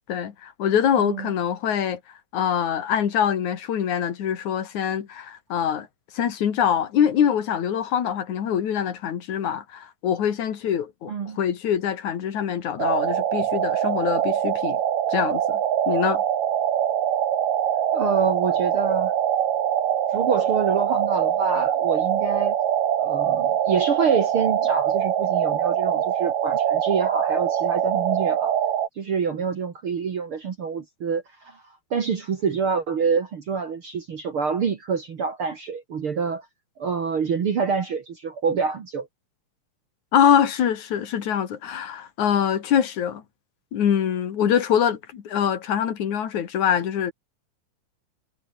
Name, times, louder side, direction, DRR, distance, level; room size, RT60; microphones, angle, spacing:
voice 1, 0.1-2.0 2.3-5.9 6.1-14.8 15.1-15.6 15.9-16.2 40.1-43.2 43.7-47.1, left 9 dB, 65° left, 3.5 m, -24 dB
voice 2, 1.0-1.3 11.1-11.4 17.9-19.1 20.1-22.6 23.0-28.6 29.0-31.6 31.9-36.5 36.8-39.1, right 5 dB, 45° right, 2.3 m, -26 dB
sound 1, 12.8-28.9, right 10 dB, 75° right, 3.5 m, -23 dB
omnidirectional pair, 3.8 m